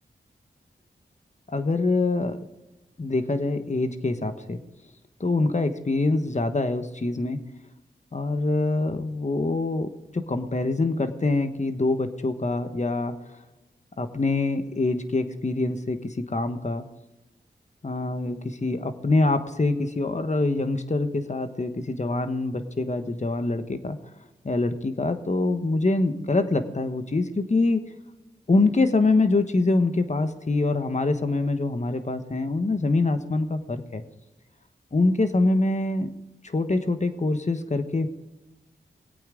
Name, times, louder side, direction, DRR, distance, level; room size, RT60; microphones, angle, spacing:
voice 1, 1.5-2.4 3.0-4.6 5.2-7.4 8.1-13.4 14.0-16.8 17.8-24.0 24.4-27.8 28.5-34.0 34.9-36.1 36.4-38.1, left 2 dB, 40° left, 9 dB, 1.2 m, -25 dB
20.0 x 8.5 x 3.9 m, 1.1 s
cardioid pair, 45°, 19 cm